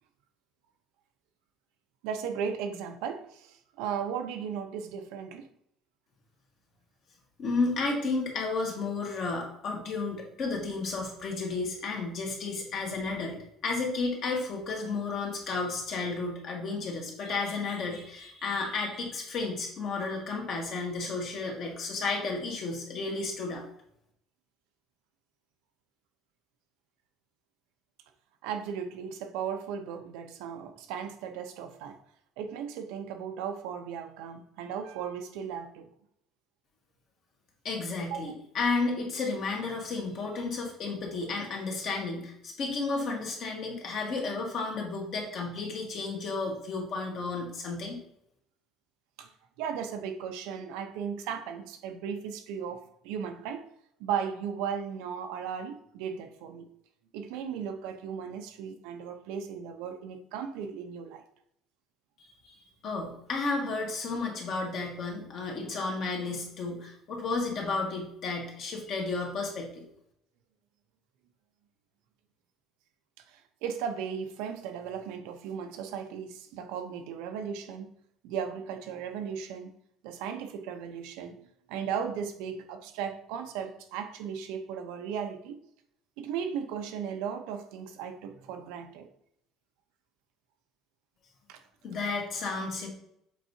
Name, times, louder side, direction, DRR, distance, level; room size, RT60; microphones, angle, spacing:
voice 1, 2.0-5.5 28.4-32.0 32.4-35.9 38.1-38.2 49.2-49.3 49.6-53.6 54.0-56.7 57.1-61.2 73.3-77.9 78.2-79.7 80.0-81.4 81.7-85.6 86.2-89.1 91.5-91.6, right 7 dB, 85° right, 0.8 m, -36 dB
voice 2, 7.4-13.4 13.6-23.7 37.6-48.0 62.5-62.6 62.8-69.8 91.8-92.9, left 3 dB, 40° left, 1.6 m, -32 dB
7.3 x 4.7 x 2.8 m
cardioid pair, 175°, 0 cm